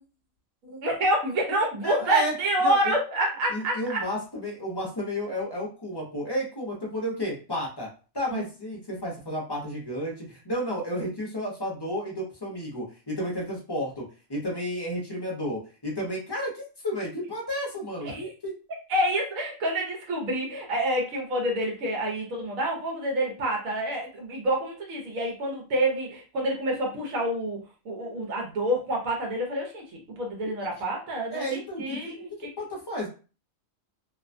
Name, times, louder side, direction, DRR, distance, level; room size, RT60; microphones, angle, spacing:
voice 1, 0.6-4.0 8.3-8.4 18.0-18.3 18.9-29.8 30.2-32.3, right 1 dB, 80° right, 0 dB, 1.2 m, -28 dB
voice 2, 1.8-2.3 2.6-2.9 3.5-7.9 8.1-14.0 14.3-18.5 30.6-30.7 31.3-33.1, equal, 25° left, -2 dB, 0.5 m, -32 dB
2.8 x 2.2 x 2.5 m, 0.35 s
omnidirectional pair, 1.4 m